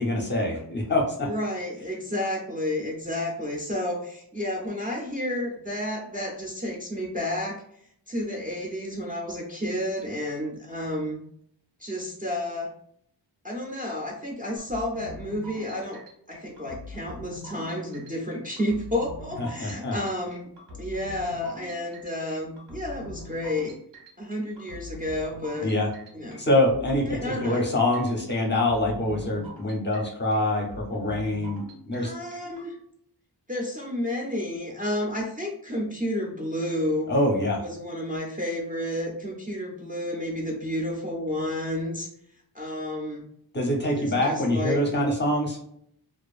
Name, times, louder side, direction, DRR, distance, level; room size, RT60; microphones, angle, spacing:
voice 1, 0.0-1.3 19.4-20.0 25.6-25.9 26.4-32.1 37.1-37.6 43.5-45.6, left 1 dB, 25° left, -1 dB, 0.5 m, -25 dB
voice 2, 1.2-7.6 8.1-11.2 11.8-12.7 13.4-16.0 16.3-20.5 20.8-23.8 24.2-25.7 26.1-26.4 27.1-27.7 32.0-32.8 33.5-37.1 37.6-42.1 42.5-43.3 43.9-44.8, left 1 dB, 20° right, -2 dB, 0.4 m, -31 dB
sound 1, 14.6-32.7, left 1 dB, 85° right, 1.1 m, -43 dB
2.5 x 2.4 x 2.3 m, 0.68 s
wide cardioid pair, 150°, 40 cm